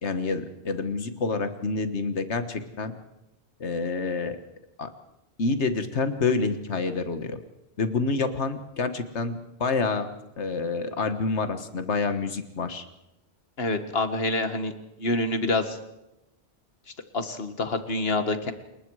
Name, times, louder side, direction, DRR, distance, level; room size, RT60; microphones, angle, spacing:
voice 1, 0.0-2.9 3.6-4.4 4.8-4.9 5.4-7.4 7.8-10.1 10.4-12.8, left 4 dB, 85° left, 9 dB, 1.7 m, -28 dB
voice 2, 13.6-14.7 15.0-15.8 17.1-18.5, left 2 dB, 60° left, 8 dB, 1.9 m, -26 dB
27.5 x 22.0 x 4.8 m, 0.92 s
omnidirectional pair, 1.1 m